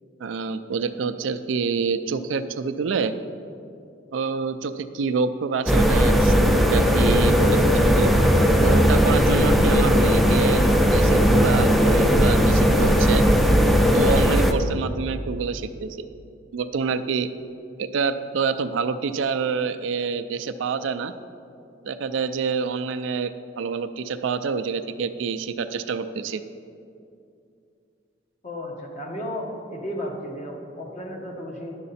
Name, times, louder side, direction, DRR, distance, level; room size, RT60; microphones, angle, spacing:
voice 1, 0.2-3.1 4.1-8.1 8.6-13.2 13.9-16.1 16.5-17.3 17.8-21.1 21.9-26.4, right 5 dB, 80° right, 10 dB, 0.4 m, -27 dB
sound 1, 5.7-14.5, equal, ahead, 0.4 m, -18 dB
voice 2, 28.4-31.8, equal, 40° left, 0 dB, 1.2 m, -34 dB
10.5 x 6.6 x 4.1 m, 2.5 s
head